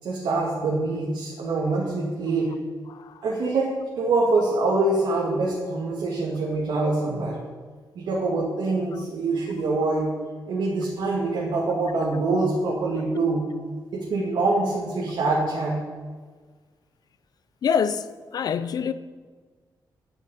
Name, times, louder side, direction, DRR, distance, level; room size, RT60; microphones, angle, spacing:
voice 1, 0.0-2.5 3.2-7.5 8.0-10.1 10.5-13.5 13.9-15.8, right 3 dB, 75° right, 2.3 m, -25 dB
voice 2, 17.6-18.0 18.3-18.9, left 7 dB, 55° left, 0.6 m, -25 dB
11.0 x 6.5 x 9.2 m
wide cardioid pair, 180°, 8 cm